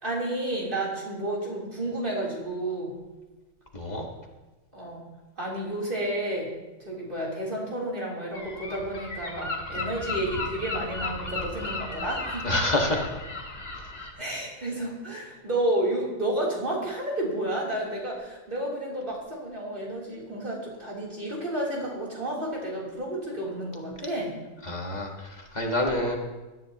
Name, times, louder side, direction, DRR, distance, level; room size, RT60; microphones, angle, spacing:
voice 1, 0.0-3.0 4.7-5.1 5.4-6.5 6.8-12.5 14.1-24.4, right 1 dB, 40° right, -5 dB, 3.6 m, -31 dB
voice 2, 3.7-4.1 12.4-13.0 24.6-26.2, left 1 dB, 30° left, 1 dB, 1.6 m, -27 dB
Gull seagull, 8.3-14.1, left 3 dB, 45° left, 1.7 m, -35 dB
17.5 x 13.0 x 2.9 m, 1.2 s
omnidirectional pair, 1.4 m